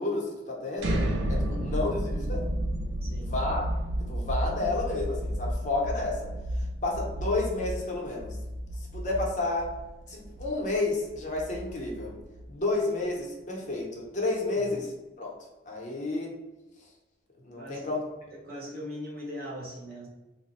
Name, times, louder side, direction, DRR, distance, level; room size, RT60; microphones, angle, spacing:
voice 1, 0.0-2.4 3.3-3.7 4.1-6.3 6.5-8.4 8.9-9.7 10.1-12.1 12.5-14.9 15.2-15.3 15.7-16.3 17.4-18.0, left 2 dB, 40° left, -1 dB, 0.7 m, -31 dB
sound 1, 0.8-12.6, right 1 dB, 80° right, 0.5 m, -32 dB
voice 2, 1.3-1.7 3.0-3.3 14.6-14.8 17.6-17.9 18.3-20.1, equal, 50° right, -5 dB, 1.1 m, -40 dB
2.9 x 2.1 x 4.1 m, 1.1 s
head